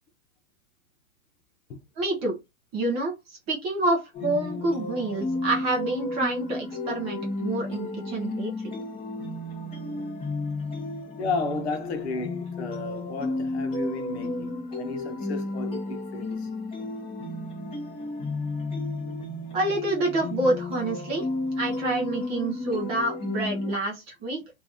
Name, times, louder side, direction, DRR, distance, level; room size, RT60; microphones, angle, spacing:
voice 1, 2.0-2.4 2.7-8.5 19.5-21.3 21.6-24.4, right 2 dB, 15° right, 0.5 m, -28 dB
sound 1, 4.1-23.7, left 2 dB, 15° left, 1.1 m, -32 dB
voice 2, 11.2-16.5, left 4 dB, 50° left, 1.1 m, -33 dB
3.3 x 2.6 x 3.7 m
hypercardioid pair, 155°, 41 cm